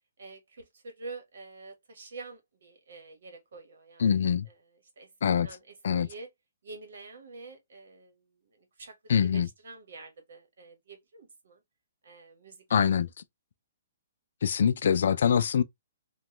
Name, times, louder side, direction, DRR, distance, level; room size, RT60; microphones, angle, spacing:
voice 1, 0.2-5.1 5.4-6.3 6.6-11.6 12.0-12.6 13.0-13.1, right 3 dB, 75° right, 1.2 m, -47 dB
voice 2, 4.0-4.5 5.2-5.5 5.8-6.1 9.1-9.5 12.7-13.1 14.4-15.6, left 7 dB, 65° left, 0.4 m, -24 dB
3.0 x 2.2 x 2.9 m
hypercardioid pair, 155°, 0 cm